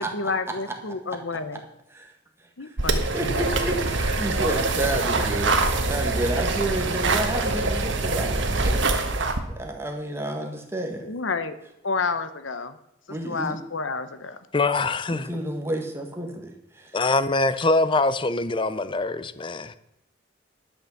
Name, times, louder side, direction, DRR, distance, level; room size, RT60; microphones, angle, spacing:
voice 1, 0.0-1.6 2.6-3.6 11.0-11.6 11.8-12.8 13.2-14.4, left 4 dB, 75° left, 0.9 m, -30 dB
sound 1, 2.8-9.4, right 3 dB, 70° right, 1.3 m, -24 dB
voice 2, 3.1-8.9 9.5-11.1 13.1-13.6 15.1-17.0, right 1 dB, 15° right, 1.6 m, -31 dB
voice 3, 14.5-15.3 16.9-19.7, left 3 dB, 25° left, 0.5 m, -23 dB
11.0 x 6.6 x 7.2 m
head